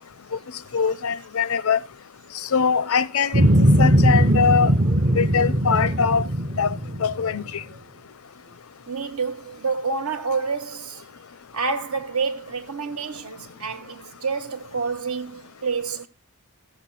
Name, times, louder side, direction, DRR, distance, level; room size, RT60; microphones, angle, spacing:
voice 1, 0.7-1.8 2.5-4.7 5.1-6.3 6.6-6.7 7.0-7.4, left 6 dB, 80° left, 0.6 m, -22 dB
sound 1, 3.3-7.6, equal, 40° right, 0.7 m, -19 dB
voice 2, 8.9-11.0 11.5-16.1, right 4 dB, 80° right, 1.4 m, -28 dB
14.5 x 7.6 x 4.1 m
head